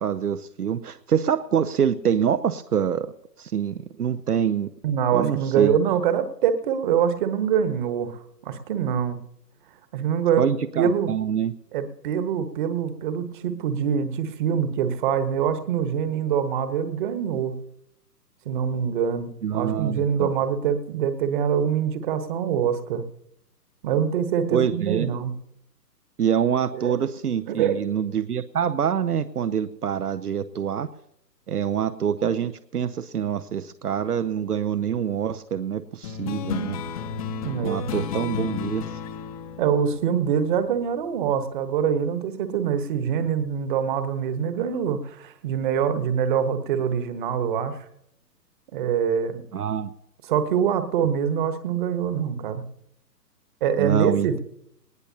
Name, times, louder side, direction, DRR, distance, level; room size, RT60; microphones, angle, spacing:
voice 1, 0.0-3.1 3.4-4.7 5.1-5.7 10.4-11.5 19.4-20.3 24.5-25.1 26.2-30.9 31.5-36.8 37.6-38.9 49.5-49.9 53.8-54.4, right 8 dB, 65° right, 10 dB, 0.8 m, -25 dB
voice 2, 4.8-9.2 9.9-10.5 10.8-11.1 11.7-17.6 18.4-23.0 23.8-25.3 26.7-27.0 27.5-27.8 37.4-37.9 39.6-47.9 48.7-49.4 50.2-52.6 53.6-54.4, right 8 dB, 30° right, 10 dB, 1.3 m, -24 dB
sound 1, 36.0-41.0, left 5 dB, 20° left, 0.9 m, -33 dB
19.5 x 19.0 x 2.8 m, 0.76 s
figure-of-eight pair, 130°, 48 cm